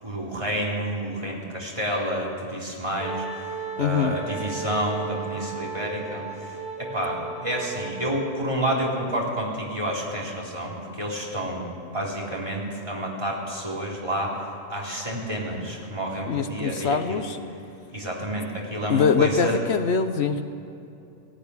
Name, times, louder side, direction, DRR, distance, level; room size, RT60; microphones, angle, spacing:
voice 1, 0.0-11.7 11.9-14.4 14.7-17.3 17.9-19.6, equal, 25° right, -3 dB, 3.9 m, -29 dB
Wind instrument woodwind instrument, 3.0-8.9, right 5 dB, 35° left, 2.2 m, -36 dB
voice 2, 3.8-4.2 16.3-17.4 18.9-20.4, left 6 dB, 70° left, 9 dB, 1.2 m, -23 dB
18.0 x 15.5 x 9.8 m, 2.7 s
omnidirectional pair, 1.2 m